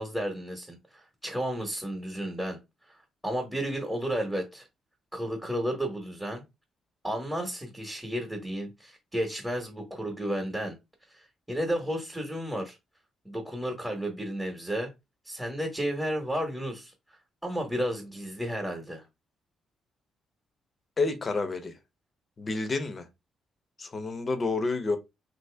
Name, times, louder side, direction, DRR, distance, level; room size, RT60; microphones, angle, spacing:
voice 1, 0.0-2.6 2.9-3.0 3.2-4.7 5.1-6.4 7.0-10.7 11.1-11.2 11.5-12.8 13.2-14.9 15.2-16.9 17.4-19.0, equal, 5° right, 1.1 m, -32 dB
voice 2, 21.0-21.7 22.4-23.0 23.8-25.0, left 3 dB, 35° left, 0.8 m, -29 dB
2.9 x 2.8 x 3.4 m
cardioid pair, 90°, 0 cm